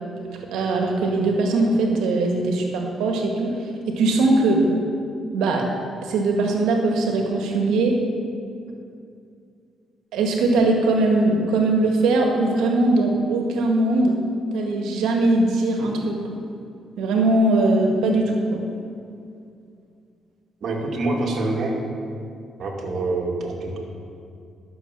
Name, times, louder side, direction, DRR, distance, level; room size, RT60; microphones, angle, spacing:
voice 1, 0.4-4.6 5.3-5.7 6.0-8.0 10.1-14.2 14.5-16.2 17.0-18.6, right 2 dB, 85° right, 2 dB, 1.8 m, -20 dB
voice 2, 20.6-21.8 22.6-23.8, right 2 dB, 60° right, -1 dB, 2.3 m, -26 dB
11.0 x 7.0 x 7.5 m, 2.4 s
cardioid pair, 90°, 0 cm